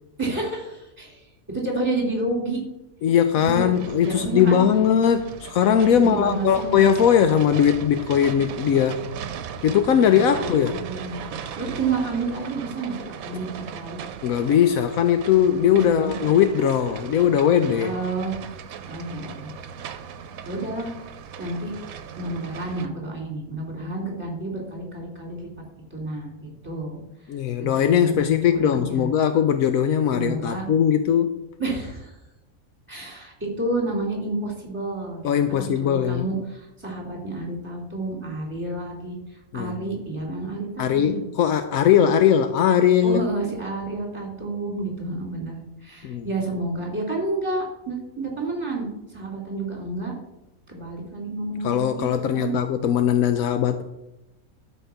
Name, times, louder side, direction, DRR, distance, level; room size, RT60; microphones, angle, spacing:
voice 1, 0.2-2.6 3.5-3.7 4.0-4.6 5.9-6.8 10.1-11.2 11.6-14.0 15.7-16.2 17.7-18.4 18.9-19.5 20.4-21.0 21.4-21.7 22.2-25.5 25.9-29.1 30.1-30.6 31.6-32.2 32.9-35.3 35.8-41.2 43.0-50.2 50.7-52.5, right 2 dB, 20° right, 0 dB, 2.7 m, -30 dB
voice 2, 3.0-9.0 9.6-10.8 13.3-13.4 14.2-17.9 27.3-31.4 35.2-36.3 39.5-40.0 40.8-43.2 46.0-46.3 51.6-53.8, left 9 dB, 80° left, 9 dB, 1.1 m, -20 dB
sound 1, 3.7-22.9, right 7 dB, 80° right, 1.2 m, -38 dB
12.5 x 4.4 x 6.9 m, 0.94 s
omnidirectional pair, 1.5 m